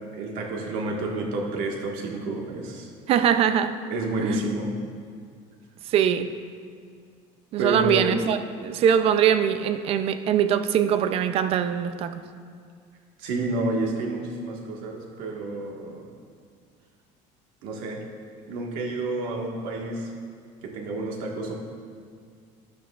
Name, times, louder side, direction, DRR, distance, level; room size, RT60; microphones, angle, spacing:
voice 1, 0.1-2.9 3.9-4.7 7.6-8.3 13.2-16.1 17.6-18.0 18.5-20.1 20.6-21.5, right 2 dB, 70° right, 1.6 m, -29 dB
voice 2, 3.1-3.8 4.2-4.4 5.9-6.3 7.5-12.1, right 9 dB, 40° right, 0.4 m, -22 dB
12.0 x 11.5 x 2.4 m
cardioid pair, 165°, 15 cm